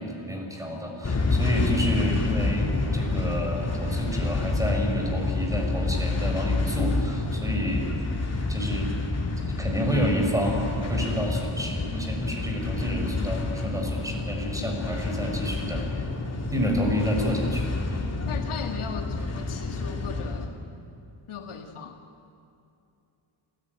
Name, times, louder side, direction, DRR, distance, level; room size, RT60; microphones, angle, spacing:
voice 1, 0.0-7.9 8.5-8.9 9.6-15.9 16.5-18.1, equal, 5° right, 1 dB, 5.5 m, -29 dB
sound 1, 1.0-20.5, left 3 dB, 30° left, 3.1 m, -28 dB
voice 2, 18.3-20.5 21.3-22.0, left 6 dB, 75° left, 4 dB, 2.0 m, -37 dB
28.0 x 17.0 x 9.3 m, 2.7 s
wide cardioid pair, 125°, 50 cm